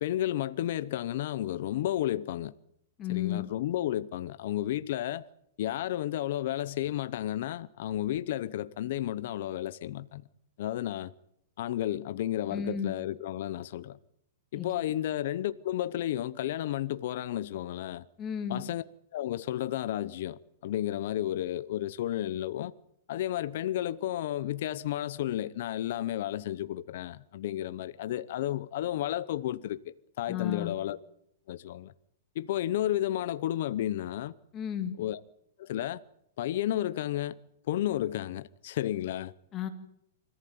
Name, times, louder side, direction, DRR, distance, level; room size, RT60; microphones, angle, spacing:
voice 1, 0.0-2.5 3.1-5.3 5.6-10.2 10.6-11.1 11.6-14.0 14.5-18.0 18.5-18.8 19.1-22.7 23.1-31.0 31.5-31.9 32.3-34.3 35.0-35.2 35.6-36.0 36.4-37.4 37.7-39.3, left 12 dB, 45° left, 0.8 m, -32 dB
voice 2, 3.0-3.4 12.5-12.9 14.6-14.7 18.2-18.6 30.3-30.8 34.5-34.9 39.5-39.7, left 9 dB, 20° left, 2.1 m, -33 dB
25.5 x 14.5 x 9.5 m
hypercardioid pair, 175°, 0 cm